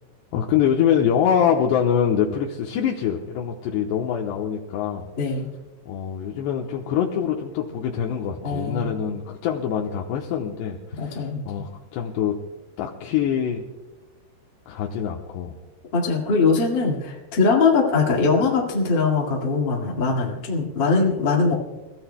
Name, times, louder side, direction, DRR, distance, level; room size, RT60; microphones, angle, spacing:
voice 1, 0.3-5.1 5.9-12.4 12.8-13.6 14.7-15.5, left 8 dB, 75° left, -1 dB, 2.7 m, -24 dB
voice 2, 5.1-5.5 8.4-9.0 10.9-11.4 15.9-21.5, left 4 dB, 60° left, -2 dB, 1.2 m, -21 dB
30.0 x 15.0 x 2.2 m, 1.2 s
omnidirectional pair, 5.6 m